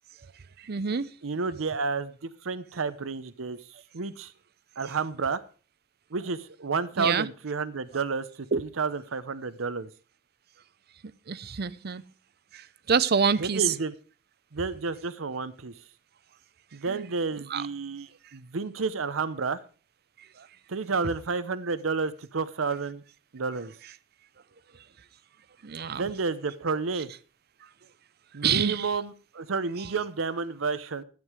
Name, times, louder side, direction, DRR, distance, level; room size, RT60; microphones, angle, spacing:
voice 1, 0.7-1.1 7.0-7.3 8.5-8.6 11.3-12.0 12.9-13.6 17.5-17.6 25.6-26.0 28.4-28.9, right 6 dB, 50° right, 0.6 m, -26 dB
voice 2, 1.2-3.6 3.9-4.3 4.8-5.4 6.1-8.3 8.6-9.9 13.4-13.9 14.5-15.7 16.7-19.6 20.7-23.0 23.3-23.7 25.9-27.1 28.3-31.0, right 4 dB, 85° right, 0.7 m, -30 dB
13.0 x 9.3 x 4.8 m
head